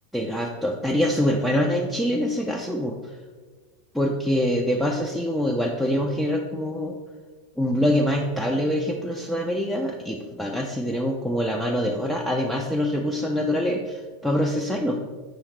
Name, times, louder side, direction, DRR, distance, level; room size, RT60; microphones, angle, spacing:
voice 1, 0.1-3.0 3.9-7.0 7.6-15.0, equal, ahead, -1 dB, 0.4 m, -25 dB
5.4 x 3.1 x 3.1 m, 1.4 s
figure-of-eight pair, 90°, 0 cm